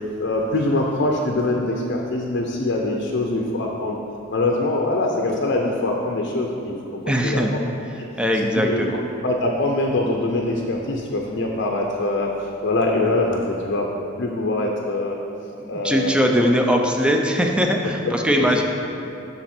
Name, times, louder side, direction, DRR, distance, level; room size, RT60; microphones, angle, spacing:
voice 1, 0.2-4.0 4.3-6.8 7.2-7.6 8.5-8.8 9.2-13.9 14.1-15.2 15.7-16.5 18.4-18.5, left 2 dB, 55° left, 0 dB, 0.7 m, -23 dB
voice 2, 7.1-7.5 8.2-9.0 15.6-18.6, equal, 5° right, 2 dB, 0.6 m, -20 dB
12.5 x 4.2 x 4.4 m, 2.8 s
head